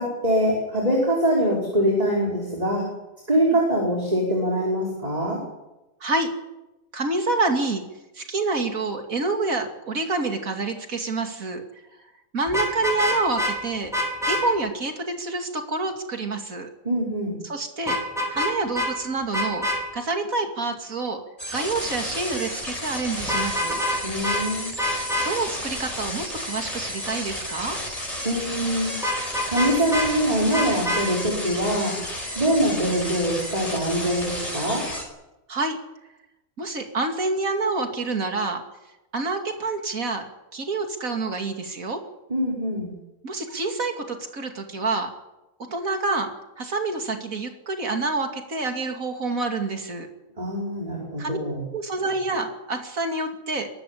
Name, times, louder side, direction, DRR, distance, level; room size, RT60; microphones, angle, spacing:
voice 1, 0.0-2.8 3.3-5.4 16.9-17.3 24.0-24.7 28.2-29.0 29.5-32.0 32.4-34.9 42.3-42.9 50.4-51.6, equal, 30° right, -3 dB, 5.3 m, -23 dB
voice 2, 6.9-7.8 8.1-11.6 12.3-13.9 14.3-16.7 17.4-18.0 18.3-19.7 19.9-21.2 21.5-23.8 25.2-27.8 35.5-35.8 36.6-38.6 39.1-40.3 40.5-42.0 43.2-45.1 45.7-46.3 46.6-50.1 51.2-51.4 51.7-53.7, right 3 dB, 85° right, 4 dB, 3.0 m, -27 dB
Vehicle horn car horn honking, 12.5-13.5 13.9-14.4 17.9-18.5 18.7-18.9 19.3-19.8 23.2-24.0 24.2-24.4 24.8-25.3 29.0-30.1 30.5-31.0, left 1 dB, ahead, 6.2 m, -25 dB
sound 1, 21.4-35.0, left 1 dB, 25° left, 5.1 m, -32 dB
23.5 x 13.0 x 10.0 m, 0.97 s
omnidirectional pair, 1.4 m